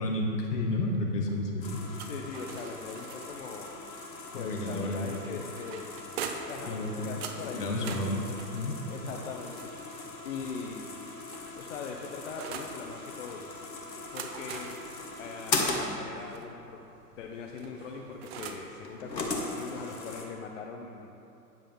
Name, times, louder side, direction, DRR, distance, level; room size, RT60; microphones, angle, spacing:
voice 1, 0.0-1.8 4.3-5.1 6.7-7.1 7.5-8.2 8.5-8.7, left 1 dB, 70° left, 0 dB, 1.5 m, -31 dB
sound 1, 1.6-20.3, left 3 dB, 90° left, 1.3 m, -39 dB
sound 2, 2.0-3.5 4.9-6.7 7.2-10.1 11.0-12.8 13.9-16.5 17.6-18.7, right 6 dB, 40° right, 0.7 m, -44 dB
voice 2, 2.1-3.7 4.3-5.9 6.5-8.0 8.9-9.7 10.2-10.9 11.6-13.5 14.1-14.8 15.2-16.8 17.2-21.1, left 5 dB, 50° left, 2 dB, 0.7 m, -41 dB
9.3 x 7.4 x 3.6 m, 2.8 s
figure-of-eight pair, 115°, 49 cm